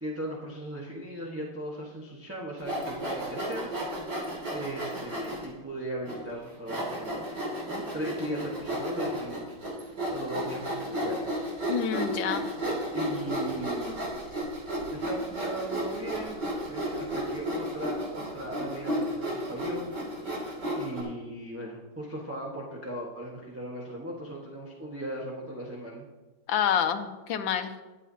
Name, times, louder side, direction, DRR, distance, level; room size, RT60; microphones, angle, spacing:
voice 1, 0.0-3.7 4.5-9.4 9.8-11.5 12.9-14.0 14.9-16.4 16.6-19.9 20.7-26.1, right 1 dB, 10° right, -4 dB, 1.3 m, -38 dB
Sawing, 2.6-5.5 6.1-6.2 6.7-21.0, right 1 dB, 60° right, 3.4 m, -33 dB
voice 2, 11.7-12.5 26.5-27.7, left 8 dB, 80° left, 7 dB, 1.5 m, -28 dB
21.5 x 8.3 x 2.8 m, 1.2 s
omnidirectional pair, 2.1 m